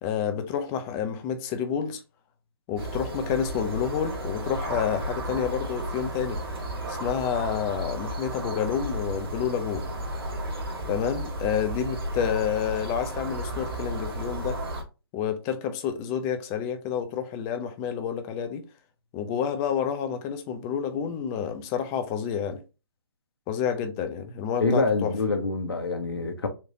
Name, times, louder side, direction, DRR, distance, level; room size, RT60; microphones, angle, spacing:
voice 1, 0.0-2.0 2.7-6.4 6.9-9.8 10.9-14.6 15.1-18.6 19.1-22.6 23.5-25.1, left 8 dB, 20° left, 0.5 m, -29 dB
sound 1, 2.8-14.8, right 1 dB, 60° right, 1.8 m, -33 dB
voice 2, 24.6-26.5, left 3 dB, 70° left, 1.1 m, -25 dB
4.3 x 3.2 x 2.7 m
figure-of-eight pair, 135°, 13 cm